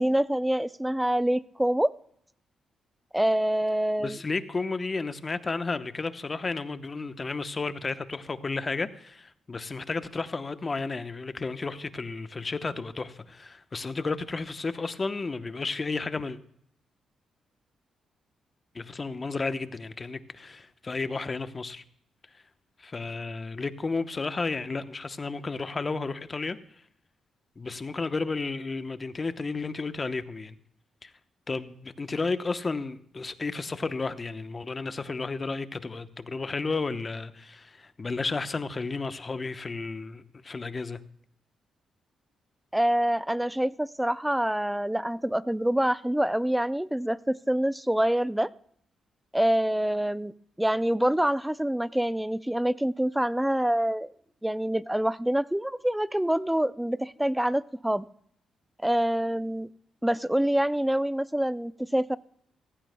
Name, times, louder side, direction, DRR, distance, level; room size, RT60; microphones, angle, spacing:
voice 1, 0.0-1.9 3.1-4.2 42.7-48.5 49.3-50.3 50.6-54.1 54.4-58.1 58.8-59.7 60.0-62.2, right 1 dB, 5° right, 0.4 m, -26 dB
voice 2, 4.0-16.4 18.7-21.8 22.3-22.4 22.8-26.6 27.6-30.6 31.0-31.1 31.5-41.0, left 3 dB, 35° left, 0.9 m, -32 dB
16.0 x 15.5 x 2.2 m
cardioid pair, 75°, 0 cm